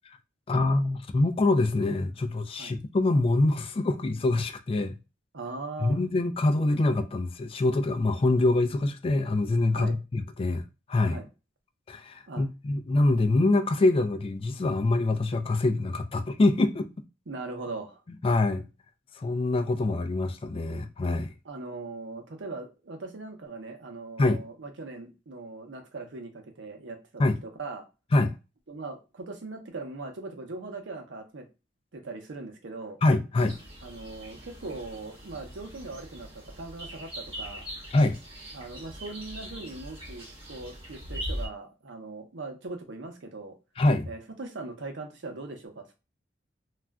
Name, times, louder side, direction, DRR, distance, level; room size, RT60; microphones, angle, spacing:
voice 1, 0.5-5.0 5.8-10.6 10.9-11.2 11.9-16.9 18.2-18.7 19.2-21.3 24.2-24.4 27.2-27.4 28.1-28.3 33.0-33.6 37.9-38.2 43.8-44.1, left 2 dB, 30° left, 0.3 m, -25 dB
voice 2, 5.3-6.0 9.7-10.0 11.1-11.3 12.3-12.4 17.3-18.0 21.4-27.0 27.4-27.8 28.7-31.5 31.9-33.0 33.8-37.7 38.5-43.6 44.1-46.0, right 3 dB, 80° right, 0.7 m, -40 dB
sound 1, 33.4-41.5, equal, 30° right, 1.0 m, -41 dB
2.4 x 2.1 x 3.5 m
head